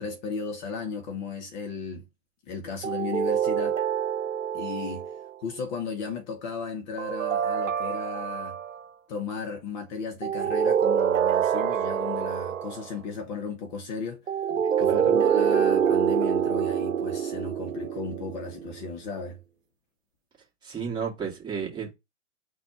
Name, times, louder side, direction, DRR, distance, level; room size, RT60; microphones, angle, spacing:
voice 1, 0.0-2.0 2.5-3.8 4.5-5.1 5.4-8.6 9.1-14.5 14.8-19.4, left 5 dB, 35° left, 1.0 m, -35 dB
sound 1, 2.8-5.3 7.0-8.8 10.2-12.9 14.3-18.8, right 8 dB, 80° right, 0.8 m, -26 dB
voice 2, 20.6-21.9, right 6 dB, 10° right, 1.8 m, -32 dB
4.1 x 2.5 x 4.2 m
hypercardioid pair, 130°, 38 cm